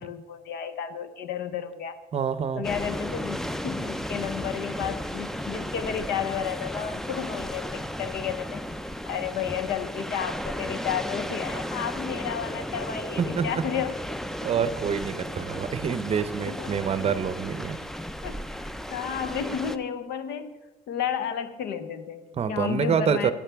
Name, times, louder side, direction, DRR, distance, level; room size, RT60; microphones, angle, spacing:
voice 1, 0.0-1.9 2.6-8.6 9.1-14.0 16.4-16.7 18.2-20.6 20.9-23.3, left 8 dB, 75° left, 11 dB, 0.8 m, -32 dB
voice 2, 2.1-2.7 13.2-13.5 14.4-17.8 22.3-23.3, right 7 dB, 35° right, 13 dB, 0.6 m, -26 dB
sound 1, 2.6-19.8, equal, ahead, 0.4 m, -34 dB
13.5 x 8.7 x 3.4 m, 1.2 s
cardioid pair, 110°, 17 cm